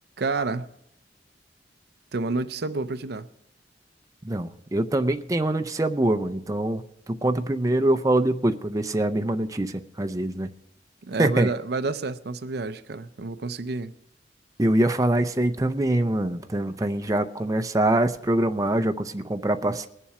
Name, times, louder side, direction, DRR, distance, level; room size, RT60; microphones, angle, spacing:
voice 1, 0.2-0.7 2.1-3.3 11.1-13.9, right 3 dB, 65° right, 0.6 m, -29 dB
voice 2, 4.2-10.5 11.2-11.5 14.6-19.9, right 1 dB, 20° right, 0.5 m, -24 dB
21.0 x 7.2 x 4.8 m
head